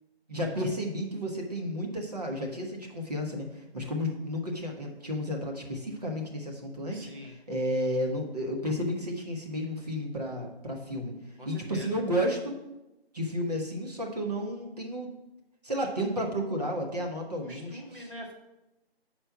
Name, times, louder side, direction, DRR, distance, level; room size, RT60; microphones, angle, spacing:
voice 1, 0.3-11.1 11.4-12.5 13.1-15.1 15.6-18.1, equal, 40° right, 0 dB, 1.2 m, -32 dB
voice 2, 6.9-7.4 11.4-11.9 17.4-18.3, equal, 55° right, -1 dB, 2.0 m, -43 dB
6.7 x 4.5 x 5.8 m, 0.96 s
figure-of-eight pair, 175°, 32 cm